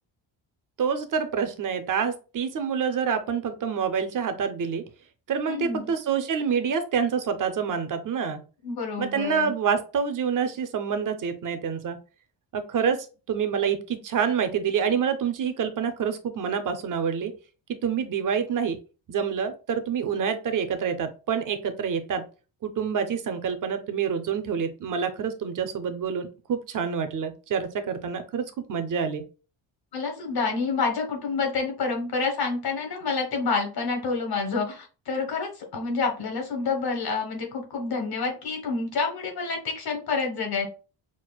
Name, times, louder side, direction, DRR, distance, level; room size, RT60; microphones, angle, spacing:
voice 1, 0.8-4.8 5.3-8.4 9.0-12.0 12.5-17.3 17.8-18.8 19.1-22.2 22.6-29.2, right 7 dB, 45° right, 9 dB, 0.5 m, -27 dB
voice 2, 5.5-5.9 8.6-9.5 29.9-40.7, left 4 dB, 50° left, 2 dB, 1.2 m, -28 dB
5.9 x 2.4 x 2.3 m, 0.34 s
wide cardioid pair, 180°, 47 cm